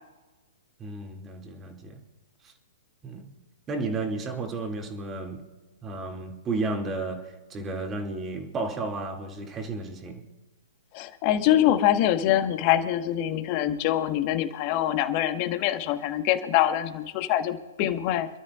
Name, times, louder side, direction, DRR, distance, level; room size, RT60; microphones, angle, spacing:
voice 1, 0.8-2.0 2.4-2.5 3.0-3.3 3.7-5.4 5.8-10.2, right 3 dB, 20° right, 2.4 m, -33 dB
voice 2, 10.9-18.3, left 12 dB, 40° left, 1.4 m, -24 dB
27.5 x 12.5 x 2.5 m
hypercardioid pair, 120°, 0 cm